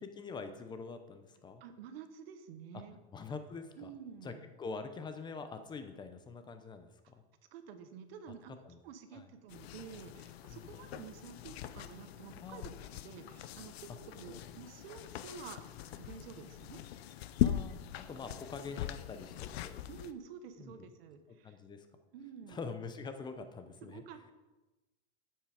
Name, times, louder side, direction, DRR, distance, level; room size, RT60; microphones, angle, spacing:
voice 1, 0.0-1.6 2.7-2.8 3.1-3.9 4.2-7.1 8.6-8.8 9.1-9.2 10.5-10.8 12.4-12.7 14.3-14.5 17.4-17.8 18.1-19.8 20.6-20.9 21.4-21.9 22.5-24.3, left 4 dB, 15° left, 9 dB, 0.7 m, -45 dB
voice 2, 1.6-3.0 3.8-4.4 7.5-8.5 8.8-16.8 19.9-21.6 22.1-22.6 23.8-24.3, right 7 dB, 75° right, 9 dB, 1.2 m, -50 dB
sound 1, 9.5-20.1, left 12 dB, 85° left, 0.6 m, -40 dB
8.6 x 7.6 x 5.0 m, 1.1 s
supercardioid pair, 145°, 30 cm